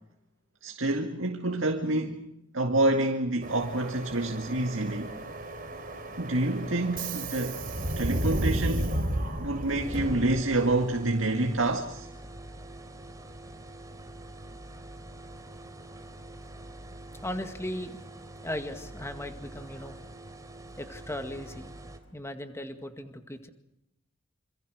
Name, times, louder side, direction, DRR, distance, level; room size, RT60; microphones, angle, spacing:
voice 1, 0.6-2.3 2.5-5.1 6.2-7.6 8.0-9.0 9.4-12.1, right 2 dB, 65° right, 2.1 m, -27 dB
Subway metro underground, 3.4-10.8, right 1 dB, 45° right, 4.3 m, -33 dB
sound 1, 9.8-22.0, right 1 dB, 15° right, 3.5 m, -45 dB
voice 2, 17.2-18.0 18.4-20.0 20.8-21.7 22.1-23.5, left 1 dB, 15° left, 2.0 m, -37 dB
27.5 x 27.0 x 6.5 m
head